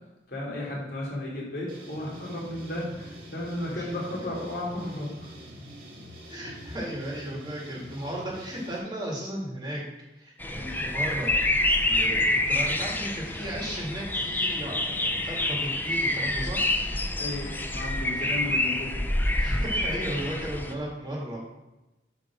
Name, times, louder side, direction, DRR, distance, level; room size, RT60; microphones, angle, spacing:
voice 1, 0.3-5.3 10.5-10.8 17.2-17.5 17.7-18.7, left 1 dB, 55° left, -4 dB, 2.7 m, -34 dB
sound 1, 1.7-8.8, equal, 50° right, 2.2 m, -45 dB
voice 2, 6.3-9.8 10.2-11.4 11.6-16.6 18.1-18.3 19.3-21.5, right 1 dB, 25° right, -4 dB, 2.1 m, -35 dB
sound 2, 10.4-20.7, left 1 dB, 10° left, 0.4 m, -27 dB
7.5 x 3.6 x 6.1 m, 1.0 s
head